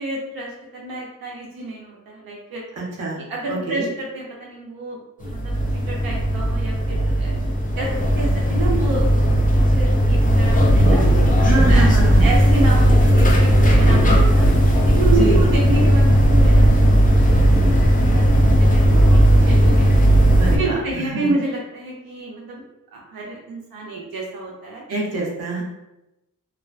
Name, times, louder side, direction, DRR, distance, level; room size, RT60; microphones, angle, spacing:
voice 1, 0.0-2.6 3.2-7.3 7.8-9.4 9.7-11.1 11.7-11.9 12.2-14.5 14.8-19.9 20.6-22.6 22.9-24.8, right 2 dB, 85° right, -3 dB, 0.6 m, -29 dB
voice 2, 2.8-3.2 3.5-3.9 11.4-12.3 15.1-15.4 20.4-21.3 24.9-25.6, right 2 dB, 45° right, -3 dB, 0.8 m, -25 dB
sound 1, 5.2-20.6, equal, 25° left, 0.5 m, -15 dB
2.4 x 2.1 x 2.4 m, 0.94 s
cardioid pair, 65°, 35 cm